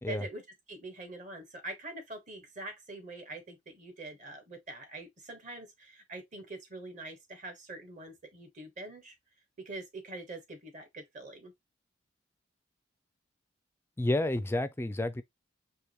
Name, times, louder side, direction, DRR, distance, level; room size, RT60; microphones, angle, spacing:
voice 1, 0.1-0.4 0.7-9.1 9.6-11.5, right 2 dB, 40° right, 1.2 m, -44 dB
voice 2, 14.0-15.2, left 1 dB, 10° left, 0.3 m, -30 dB
4.8 x 2.9 x 3.0 m
head